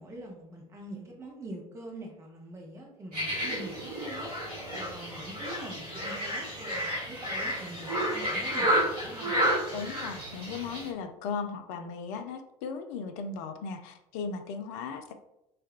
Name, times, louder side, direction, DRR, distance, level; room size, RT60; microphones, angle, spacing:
voice 1, 0.0-4.3 4.7-9.3, right 1 dB, 15° right, 0 dB, 0.6 m, -44 dB
sound 1, 3.1-10.9, equal, 80° right, 1.1 m, -31 dB
voice 2, 9.7-15.1, left 5 dB, 55° left, 7 dB, 0.4 m, -37 dB
3.4 x 2.2 x 2.3 m, 0.87 s
figure-of-eight pair, 65°, 19 cm